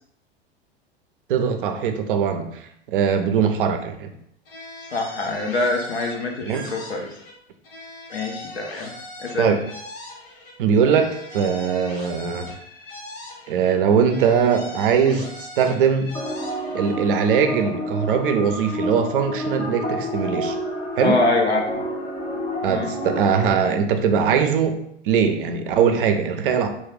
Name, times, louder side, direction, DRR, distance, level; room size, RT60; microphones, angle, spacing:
voice 1, 1.3-4.1 6.4-6.7 9.4-9.6 10.6-12.5 13.5-16.2 16.7-20.6 21.0-21.2 22.6-24.8 25.0-26.7, right 7 dB, 55° right, 7 dB, 0.5 m, -21 dB
sound 1, 4.4-7.4 7.6-10.6 10.8-13.8 14.0-17.0, left 2 dB, 60° left, 1.1 m, -40 dB
voice 2, 4.9-7.1 8.1-8.9 9.2-9.6 21.0-21.8 22.7-22.9, left 2 dB, 80° left, 2 dB, 0.6 m, -24 dB
sound 2, 16.1-23.5, left 1 dB, 15° left, 0.5 m, -29 dB
2.3 x 2.1 x 3.4 m, 0.73 s
figure-of-eight pair, 85°, 32 cm